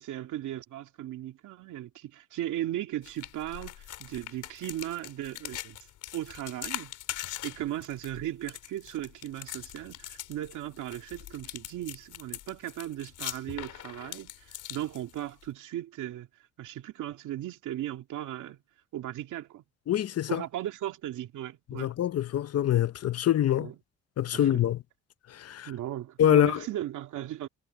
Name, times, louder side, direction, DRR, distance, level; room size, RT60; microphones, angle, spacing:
voice 1, 0.0-5.8 6.1-6.9 7.2-16.3 16.6-18.6 18.9-19.6 20.3-21.9 23.6-23.7 24.3-24.6 25.7-27.5, right 13 dB, 80° right, 2.4 m, -37 dB
sound 1, 3.0-15.5, left 13 dB, 80° left, 3.6 m, -42 dB
voice 2, 19.9-20.4 21.7-23.7 24.2-24.8 25.3-25.7 26.2-26.6, left 11 dB, 55° left, 0.8 m, -25 dB
cardioid pair, 90°, 30 cm